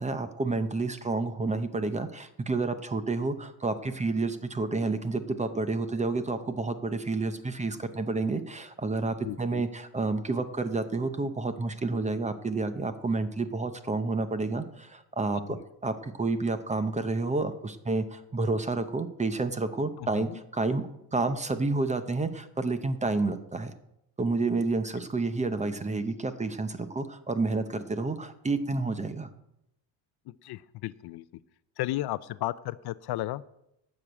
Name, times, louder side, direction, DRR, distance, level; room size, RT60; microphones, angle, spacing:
voice 1, 0.0-23.7 24.2-29.3, right 3 dB, 15° right, 11 dB, 0.6 m, -30 dB
voice 2, 9.2-9.6 15.5-15.6 20.0-20.4 30.3-31.2 31.8-33.4, left 16 dB, 55° left, 17 dB, 0.5 m, -34 dB
12.0 x 6.3 x 8.7 m, 0.83 s
cardioid pair, 155°, 46 cm